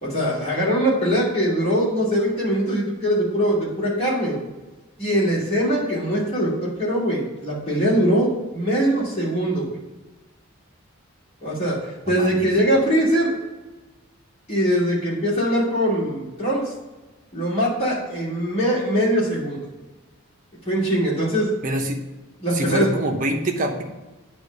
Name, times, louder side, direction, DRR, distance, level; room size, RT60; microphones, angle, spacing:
voice 1, 0.0-4.4 5.0-9.8 11.4-13.3 14.5-16.7 17.3-19.6 20.6-21.5 22.4-22.9, equal, 30° left, -7 dB, 2.7 m, -22 dB
voice 2, 12.1-12.4 21.6-22.0 22.5-23.8, right 1 dB, 35° right, 2 dB, 0.9 m, -25 dB
8.7 x 3.2 x 6.5 m, 1.2 s
head